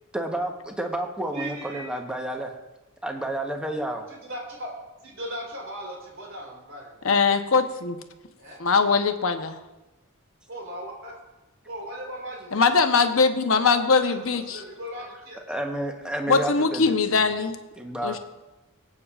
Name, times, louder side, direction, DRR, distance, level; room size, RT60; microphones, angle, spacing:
voice 1, 0.1-2.5 3.0-4.0 15.5-17.2 17.8-18.2, right 1 dB, 5° right, 3 dB, 1.0 m, -30 dB
voice 2, 1.3-2.0 4.1-4.7 5.0-7.1 8.4-8.6 10.5-11.1 11.7-12.7 13.5-15.4, equal, 65° right, -2 dB, 3.7 m, -38 dB
voice 3, 7.0-8.0 8.6-9.6 12.5-14.4 16.3-17.6 18.0-18.2, left 4 dB, 70° left, 7 dB, 0.9 m, -21 dB
24.0 x 8.5 x 2.4 m, 1.0 s
head